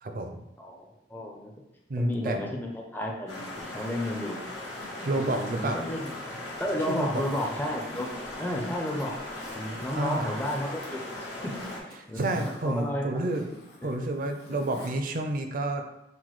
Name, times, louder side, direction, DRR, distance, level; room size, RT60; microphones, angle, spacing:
voice 1, 0.0-0.4 1.9-2.4 5.0-5.8 6.9-7.2 9.9-10.3 12.2-13.5 13.8-15.8, right 2 dB, 50° right, 5 dB, 0.4 m, -30 dB
voice 2, 0.6-1.5 2.0-4.6 5.1-6.1 6.6-8.1 8.4-9.2 9.6-11.5 12.1-13.0 13.8-13.9, left 1 dB, 10° left, -1 dB, 0.5 m, -32 dB
sound 1, 3.3-11.8, left 1 dB, 80° left, 1.5 m, -39 dB
Zipper (clothing), 4.6-6.5 7.1-8.5 8.9-9.6 10.1-10.9 11.2-15.0 15.3-15.4, left 2 dB, 60° left, 1.1 m, -49 dB
5.8 x 2.2 x 3.1 m, 0.87 s
head